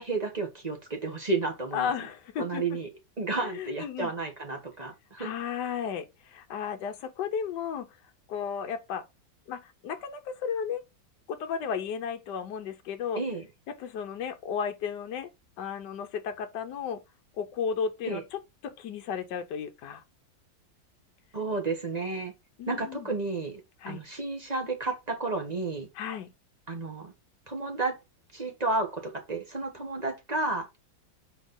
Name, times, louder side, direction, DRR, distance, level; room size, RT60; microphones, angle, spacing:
voice 1, 0.0-1.9 2.4-2.9 3.2-5.3 13.2-13.5 18.1-18.2 21.3-22.3 22.7-23.6 23.9-25.9 26.7-27.1 27.5-28.0 28.3-30.7, right 3 dB, 25° right, 1.2 m, -32 dB
voice 2, 1.7-2.8 3.4-4.1 5.2-7.9 8.3-9.0 9.5-10.8 11.3-13.2 13.7-15.3 15.6-17.0 17.4-20.0 22.6-23.1 23.8-24.0 25.9-26.3, left 7 dB, 70° left, 1.4 m, -34 dB
4.7 x 4.2 x 5.3 m
omnidirectional pair, 2.0 m